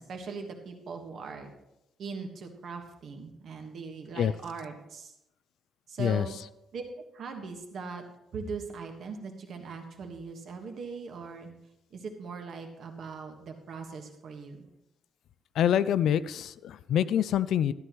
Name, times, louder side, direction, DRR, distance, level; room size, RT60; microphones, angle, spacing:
voice 1, 0.0-1.5 2.0-5.1 5.9-6.4 6.7-6.8 7.1-8.0 8.3-11.5 11.9-14.7, right 5 dB, 45° right, 4 dB, 1.4 m, -40 dB
voice 2, 15.6-17.7, left 9 dB, 60° left, 16 dB, 0.3 m, -26 dB
12.5 x 11.0 x 3.0 m, 0.87 s
cardioid pair, 180°, 0 cm